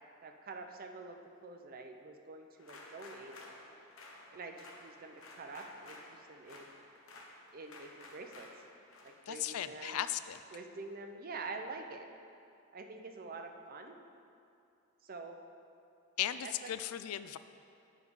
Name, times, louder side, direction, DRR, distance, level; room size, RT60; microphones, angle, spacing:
voice 1, 0.2-3.4 4.3-6.7 7.5-8.5 9.0-10.0 10.5-12.1 12.7-14.0 15.0-15.4 16.4-16.7, right 3 dB, 45° right, 5 dB, 0.6 m, -46 dB
sound 1, 2.6-10.9, left 2 dB, 65° left, 0.9 m, -55 dB
voice 2, 9.3-10.4 16.2-17.4, left 11 dB, 80° left, 13 dB, 0.3 m, -36 dB
9.0 x 4.8 x 5.3 m, 2.6 s
head